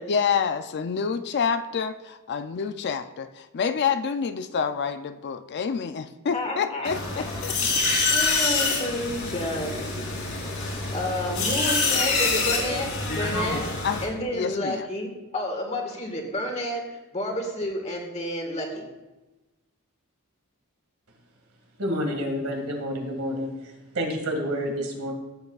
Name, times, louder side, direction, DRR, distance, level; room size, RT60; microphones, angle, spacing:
voice 1, 0.1-7.5 13.8-14.0 14.3-14.9, left 6 dB, 50° left, 10 dB, 0.4 m, -28 dB
voice 2, 6.3-7.2 7.6-7.7 8.1-9.8 10.9-13.6 14.0-18.8, left 1 dB, 30° left, 2 dB, 1.7 m, -30 dB
sound 1, 6.8-14.0, left 3 dB, 70° left, 2.8 m, -26 dB
voice 3, 21.8-23.5 23.9-25.1, equal, 75° right, 2 dB, 2.0 m, -28 dB
14.5 x 7.8 x 2.4 m, 1.1 s
head